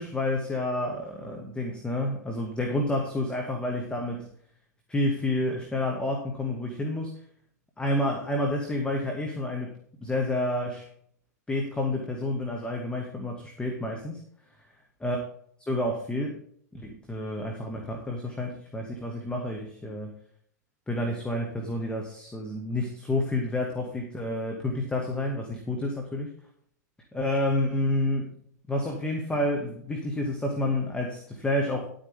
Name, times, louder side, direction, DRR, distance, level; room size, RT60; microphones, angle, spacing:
voice 1, 0.0-4.3 4.9-7.1 7.8-10.9 11.5-14.2 15.0-15.2 15.6-16.4 16.7-20.1 20.9-26.3 27.1-28.3 28.7-31.9, left 1 dB, 10° left, 2 dB, 2.1 m, -29 dB
11.5 x 8.7 x 3.7 m, 0.62 s
hypercardioid pair, 105°, 9 cm